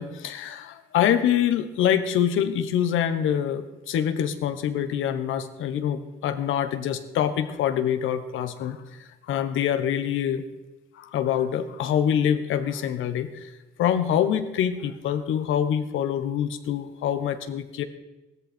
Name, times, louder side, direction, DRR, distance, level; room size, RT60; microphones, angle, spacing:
voice 1, 0.0-10.4 10.9-13.5 13.8-17.8, left 9 dB, 85° left, 10 dB, 1.2 m, -25 dB
15.5 x 13.5 x 4.4 m, 1.1 s
cardioid pair, 90°, 20 cm